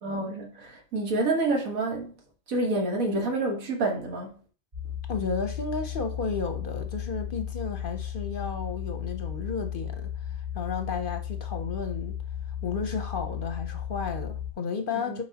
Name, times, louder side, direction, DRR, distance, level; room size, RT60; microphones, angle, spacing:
voice 1, 0.0-2.1 2.5-4.3 15.0-15.2, right 2 dB, 85° right, 1.7 m, -28 dB
sound 1, 4.7-14.5, left 10 dB, 40° right, 1.1 m, -35 dB
voice 2, 5.1-12.2 12.6-15.2, left 5 dB, 50° left, 0.8 m, -33 dB
7.3 x 5.1 x 2.8 m
omnidirectional pair, 1.4 m